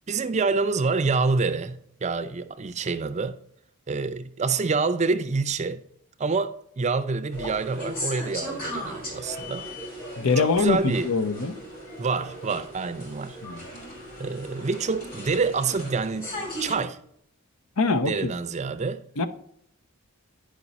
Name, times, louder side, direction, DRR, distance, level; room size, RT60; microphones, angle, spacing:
voice 1, 0.1-3.4 3.9-5.8 6.2-9.7 10.4-11.1 12.0-13.4 14.2-17.0 18.1-19.0, right 4 dB, 30° right, 0.5 m, -27 dB
sound 1, 7.3-16.8, equal, 40° left, 2.9 m, -37 dB
voice 2, 10.2-11.5 13.4-13.6 17.8-18.3 19.2-19.3, left 4 dB, 75° left, 0.8 m, -23 dB
9.9 x 5.2 x 4.0 m
head